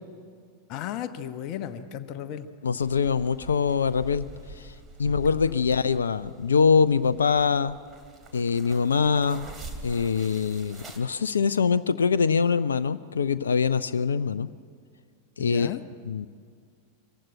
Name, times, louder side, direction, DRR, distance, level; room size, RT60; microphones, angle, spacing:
voice 1, 0.7-2.5 5.0-5.4 15.4-15.8, left 10 dB, 40° left, 10 dB, 1.1 m, -35 dB
voice 2, 2.6-4.3 4.6-4.7 5.0-7.8 8.3-9.5 9.8-14.5 15.4-15.8 16.1-16.3, left 5 dB, 70° left, 15 dB, 0.5 m, -23 dB
sound 1, 2.8-11.0, right 3 dB, 20° right, 2.7 m, -45 dB
24.0 x 15.5 x 9.1 m, 2.1 s
figure-of-eight pair, 90°, 0 cm